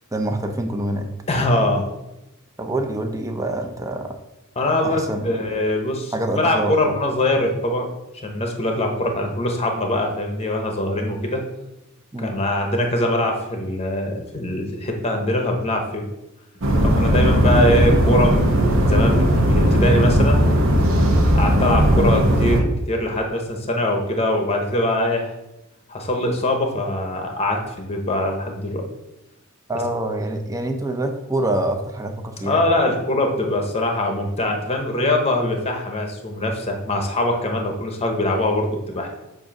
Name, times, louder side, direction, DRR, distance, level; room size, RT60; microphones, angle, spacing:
voice 1, 0.1-1.1 2.6-4.1 4.8-5.4 6.1-7.0 12.1-12.3 29.7-32.7, right 1 dB, 15° right, 4 dB, 0.6 m, -26 dB
voice 2, 1.3-1.9 4.6-7.9 8.2-11.4 12.2-16.0 16.8-20.4 21.3-25.3 25.9-28.9 32.4-39.1, left 1 dB, 30° left, 3 dB, 0.8 m, -22 dB
sound 1, 16.6-22.6, equal, 65° right, 1.0 m, -17 dB
7.4 x 2.6 x 5.2 m, 0.96 s
head